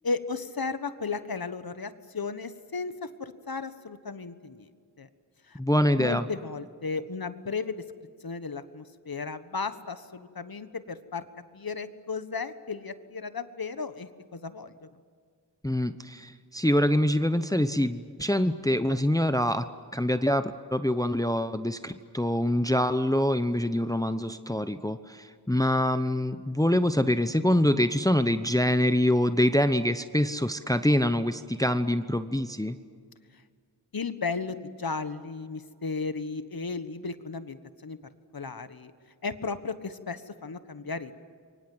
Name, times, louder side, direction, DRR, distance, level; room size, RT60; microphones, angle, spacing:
voice 1, 0.0-4.7 5.0-5.1 5.5-5.6 6.0-7.8 8.2-11.2 11.5-14.7 33.9-38.0 38.3-38.9 39.2-41.1, left 4 dB, 60° left, 11 dB, 1.4 m, -35 dB
voice 2, 5.6-6.3 15.6-19.7 19.9-32.8, left 1 dB, 10° left, 11 dB, 0.9 m, -25 dB
28.0 x 23.5 x 7.9 m, 2.1 s
wide cardioid pair, 70°, 41 cm